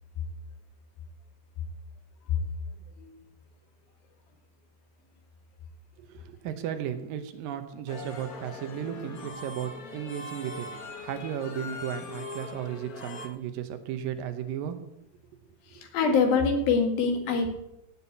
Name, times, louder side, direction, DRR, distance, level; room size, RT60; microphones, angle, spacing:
voice 1, 6.0-10.7 11.0-14.8 15.7-15.9, right 9 dB, 80° right, 9 dB, 2.7 m, -35 dB
sound 1, 7.9-13.3, left 2 dB, 70° left, 0.8 m, -41 dB
voice 2, 15.9-17.5, left 5 dB, 90° left, 4 dB, 3.8 m, -23 dB
16.0 x 5.8 x 8.3 m, 0.84 s
omnidirectional pair, 4.0 m